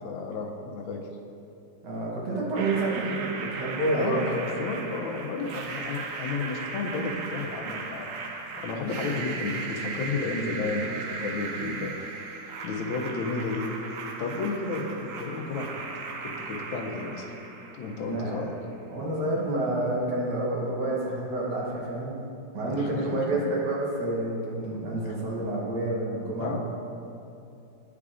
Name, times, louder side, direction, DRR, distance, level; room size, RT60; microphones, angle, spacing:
voice 1, 0.0-1.0 2.8-2.9 3.9-8.1 8.5-11.9 12.6-13.7 14.2-15.7 15.9-17.2 17.8-18.5 22.7-23.2 25.0-25.2 26.4-26.6, left 4 dB, 85° left, 2 dB, 1.4 m, -32 dB
voice 2, 1.8-4.2 8.5-8.6 18.1-18.4 18.9-22.2 22.5-26.6, right 2 dB, 65° right, -4 dB, 1.7 m, -29 dB
sound 1, 2.6-18.5, right 4 dB, 80° right, 0.7 m, -37 dB
9.8 x 4.8 x 2.5 m, 2.7 s
omnidirectional pair, 2.1 m